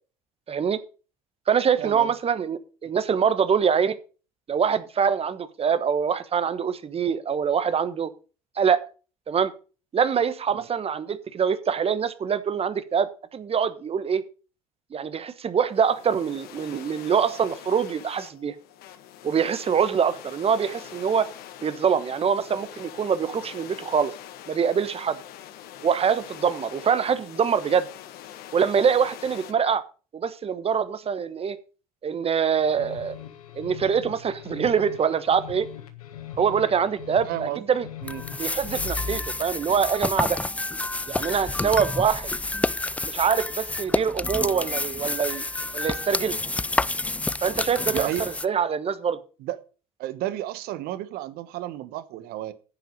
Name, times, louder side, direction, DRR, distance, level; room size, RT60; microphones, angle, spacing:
voice 1, 0.5-0.8 1.5-4.0 4.5-8.1 8.6-8.8 9.3-9.5 9.9-14.2 14.9-18.5 19.2-21.2 21.6-24.1 24.5-25.2 25.8-27.9 28.5-29.8 30.1-31.6 32.0-33.2 33.5-35.7 36.4-37.8 38.4-40.4 41.1-42.3 43.0-45.4 45.7-46.3 47.4-49.2, right 7 dB, 30° right, 1.2 m, -24 dB
voice 2, 1.8-2.1 10.5-10.7 37.3-37.6 38.0-38.2 47.9-48.2 49.4-49.6 50.0-52.5, right 14 dB, 55° right, 1.1 m, -32 dB
sound 1, 15.7-29.5, left 11 dB, 55° left, 1.3 m, -44 dB
sound 2, 32.6-39.4, left 10 dB, 75° left, 1.5 m, -41 dB
sound 3, 38.1-48.5, left 2 dB, 5° left, 0.4 m, -29 dB
10.5 x 7.8 x 5.2 m
figure-of-eight pair, 65°, 19 cm